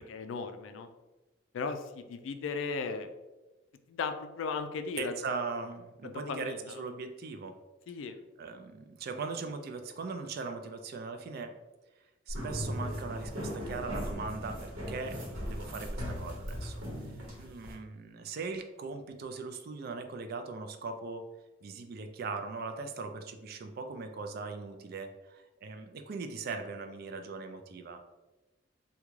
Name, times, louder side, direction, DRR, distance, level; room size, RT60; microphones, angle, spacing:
voice 1, 0.1-0.9 1.5-3.1 3.9-5.1 6.0-6.6 7.9-8.2 17.0-17.4, left 5 dB, 70° left, 8 dB, 0.3 m, -36 dB
voice 2, 5.0-7.5 8.4-11.5 12.3-16.8 17.4-21.3 21.6-28.0, right 4 dB, 50° right, 7 dB, 0.3 m, -39 dB
sound 1, 12.3-17.7, equal, 90° right, 1.0 m, -38 dB
3.5 x 2.2 x 3.1 m, 1.1 s
head